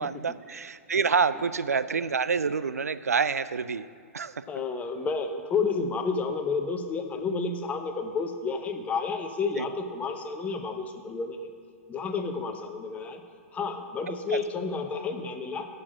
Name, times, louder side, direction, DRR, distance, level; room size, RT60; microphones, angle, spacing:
voice 1, 0.0-3.9 4.1-4.4 9.6-9.7 14.3-14.4, right 5 dB, 80° right, 14 dB, 0.3 m, -27 dB
voice 2, 4.5-11.5 11.9-13.2 13.5-15.7, left 4 dB, 15° left, 6 dB, 0.8 m, -30 dB
7.3 x 6.5 x 7.3 m, 2.2 s
figure-of-eight pair, 110°, 8 cm